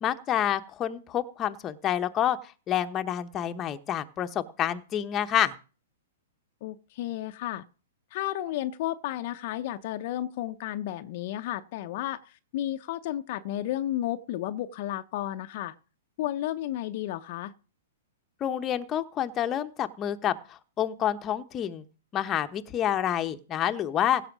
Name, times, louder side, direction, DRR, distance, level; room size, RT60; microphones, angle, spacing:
voice 1, 0.0-2.4 2.7-5.5 18.4-21.8 22.1-24.2, left 10 dB, 25° left, 1.0 m, -28 dB
voice 2, 6.6-7.6 8.1-15.8 16.2-17.5, left 13 dB, 50° left, 0.8 m, -32 dB
16.0 x 5.8 x 6.1 m
hypercardioid pair, 125°, 0 cm